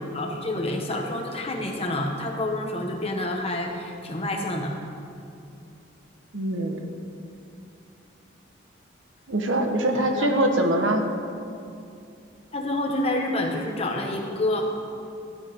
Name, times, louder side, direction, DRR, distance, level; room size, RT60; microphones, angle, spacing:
voice 1, 0.1-4.7 9.9-10.3 12.5-14.7, left 1 dB, 30° left, 1 dB, 1.3 m, -28 dB
voice 2, 6.3-6.8 9.3-11.1, right 1 dB, 80° right, 4 dB, 1.3 m, -23 dB
16.0 x 11.5 x 3.7 m, 2.6 s
head